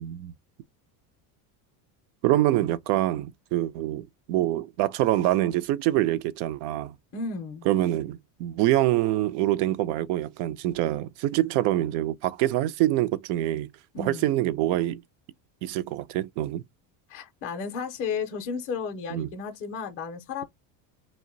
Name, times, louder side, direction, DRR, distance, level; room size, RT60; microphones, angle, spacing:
voice 1, 0.0-0.3 2.2-6.9 7.7-13.7 14.0-15.0 15.6-16.6 19.1-19.3, right 14 dB, 65° right, 0.5 m, -25 dB
voice 2, 7.1-7.7 13.9-14.3 17.1-20.4, left 5 dB, 30° left, 0.4 m, -33 dB
2.5 x 2.1 x 3.7 m
cardioid pair, 145°, 46 cm